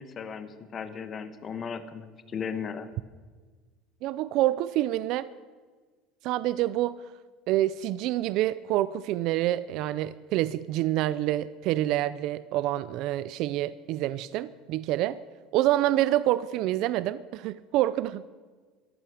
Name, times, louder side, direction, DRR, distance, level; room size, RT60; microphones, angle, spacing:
voice 1, 0.0-2.9, left 6 dB, 30° left, 10 dB, 1.1 m, -36 dB
voice 2, 4.0-5.3 6.2-7.0 7.5-15.2 15.5-18.2, right 14 dB, 55° right, 16 dB, 0.4 m, -27 dB
14.5 x 11.5 x 6.3 m, 1.4 s
cardioid pair, 145°, 0 cm